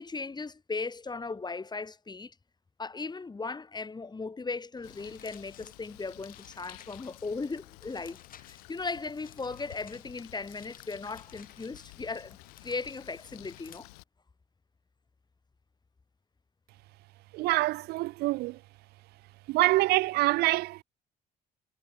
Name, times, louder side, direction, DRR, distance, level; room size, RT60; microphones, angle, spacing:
voice 1, 0.0-2.3 2.8-8.2 8.5-13.9, left 4 dB, 20° left, 1.6 m, -37 dB
Bird, 4.8-14.0, left 25 dB, 70° left, 4.0 m, -53 dB
sound 1, 4.8-13.8, left 9 dB, 45° left, 2.7 m, -56 dB
voice 2, 17.3-18.6 19.5-20.8, right 19 dB, 55° right, 0.5 m, -26 dB
figure-of-eight pair, 50°, 20 cm